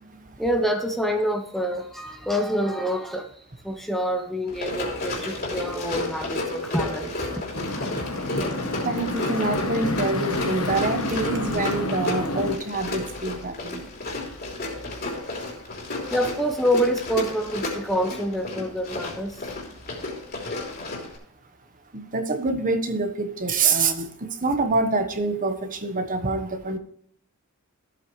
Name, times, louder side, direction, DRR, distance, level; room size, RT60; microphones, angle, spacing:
voice 1, 0.4-7.1 8.0-8.1 16.1-19.5, equal, ahead, 4 dB, 0.8 m, -26 dB
Run, 4.5-21.2, left 2 dB, 45° left, 3.2 m, -32 dB
sound 1, 7.5-12.6, left 2 dB, 65° left, 1.2 m, -29 dB
sound 2, 8.4-8.5 9.0-9.1 9.5-9.6 10.7-10.8 11.1-11.8 12.3-12.4, right 2 dB, 80° right, 1.9 m, -39 dB
voice 2, 8.8-13.8 21.9-26.8, right 3 dB, 35° right, 7 dB, 1.1 m, -26 dB
14.0 x 8.4 x 3.1 m, 0.66 s
head